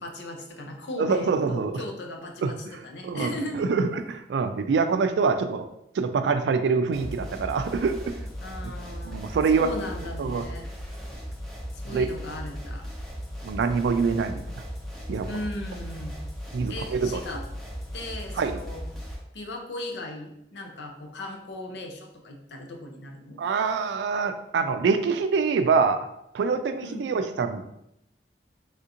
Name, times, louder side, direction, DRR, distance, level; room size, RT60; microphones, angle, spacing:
voice 1, 0.0-2.6 2.8-3.7 8.4-9.2 9.5-10.7 11.8-12.9 15.3-16.2 16.7-17.4 17.9-18.9 19.3-23.4 26.8-27.1, left 1 dB, 80° left, 3 dB, 0.6 m, -37 dB
voice 2, 1.0-1.8 2.4-2.5 3.0-5.7 5.9-8.2 9.1-9.7 10.2-10.4 11.9-12.1 13.4-14.4 15.1-15.3 16.5-17.2 18.4-18.6 23.4-26.1 26.3-27.6, right 5 dB, 80° right, 9 dB, 0.3 m, -25 dB
sound 1, 6.9-19.2, equal, ahead, 0.6 m, -37 dB
3.5 x 2.5 x 2.7 m, 0.79 s
head